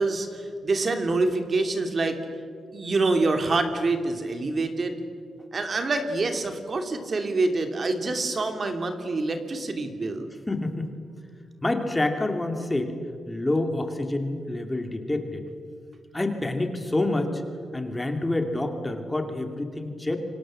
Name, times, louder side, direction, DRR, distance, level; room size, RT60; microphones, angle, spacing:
voice 1, 0.0-2.2 2.7-5.0 5.5-10.3, right 3 dB, 35° right, 6 dB, 2.7 m, -26 dB
voice 2, 10.5-10.9 11.6-12.9 13.3-15.4 16.1-17.4 17.7-20.2, left 2 dB, 15° left, 5 dB, 2.4 m, -27 dB
28.5 x 25.0 x 7.6 m, 2.3 s
wide cardioid pair, 140°, 0 cm